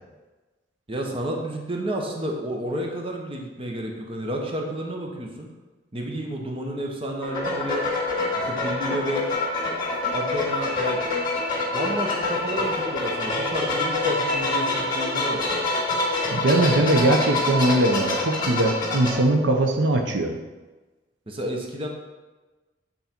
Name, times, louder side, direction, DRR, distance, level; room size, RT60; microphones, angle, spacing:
voice 1, 0.9-5.5 5.9-7.9 8.3-9.3 10.1-11.0 11.7-15.7 21.3-21.9, right 1 dB, 30° right, 1 dB, 0.9 m, -31 dB
sound 1, 7.2-19.1, left 2 dB, 25° left, 1.8 m, -26 dB
voice 2, 16.3-20.4, right 2 dB, 75° right, 4 dB, 0.7 m, -21 dB
8.1 x 4.1 x 4.3 m, 1.2 s
head